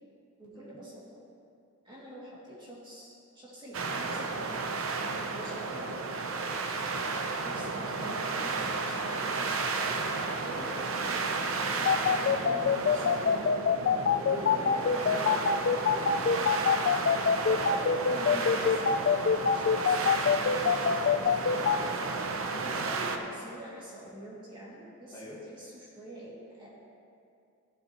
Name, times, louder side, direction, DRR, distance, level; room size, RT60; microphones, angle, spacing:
voice 1, 0.4-1.2 1.8-4.6 5.0-7.1 7.4-13.9 14.5-15.5 16.3-16.7 17.3-19.1 19.4-22.1 22.6-26.9, right 1 dB, 25° right, -6 dB, 2.3 m, -45 dB
sound 1, 3.7-23.2, right 3 dB, 80° right, 0.7 m, -33 dB
sound 2, 11.8-21.8, left 6 dB, 55° left, 0.3 m, -24 dB
voice 2, 14.1-15.3 15.7-16.9 17.4-17.6 22.4-22.7 25.1-25.4, equal, 20° left, -7 dB, 1.5 m, -44 dB
16.0 x 6.9 x 3.0 m, 2.5 s
head